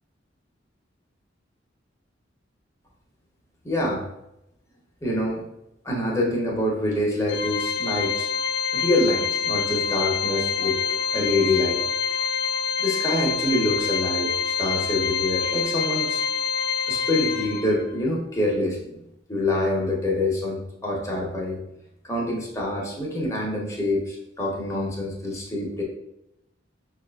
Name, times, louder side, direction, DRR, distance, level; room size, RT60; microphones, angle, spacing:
voice 1, 3.6-4.1 5.0-5.4 5.8-8.3 8.7-11.8 12.1-12.2 12.8-16.2 16.9-18.8 19.3-21.6 22.0-25.8, left 1 dB, 15° left, -2 dB, 0.7 m, -26 dB
Organ, 7.3-17.9, left 7 dB, 75° left, 0.4 m, -26 dB
5.8 x 2.4 x 2.2 m, 0.86 s
head